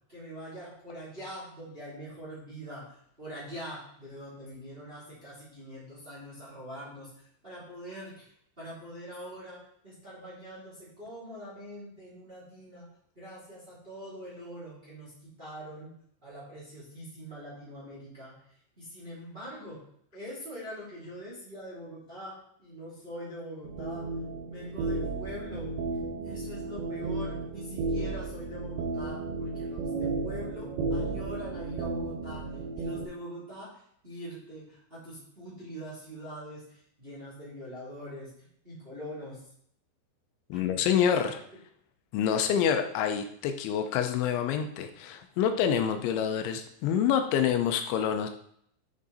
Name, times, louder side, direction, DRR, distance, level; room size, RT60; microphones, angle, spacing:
voice 1, 0.1-8.3 8.6-12.9 13.1-15.9 16.2-18.4 18.8-19.8 20.1-24.1 24.5-25.7 26.2-39.5 40.5-41.3, equal, 15° right, -7 dB, 2.7 m, -43 dB
sound 1, 23.6-33.1, right 3 dB, 75° right, 2.6 m, -33 dB
voice 2, 40.5-41.4 42.1-48.3, left 8 dB, 85° left, 7 dB, 3.0 m, -27 dB
8.6 x 6.3 x 4.1 m, 0.67 s
omnidirectional pair, 5.3 m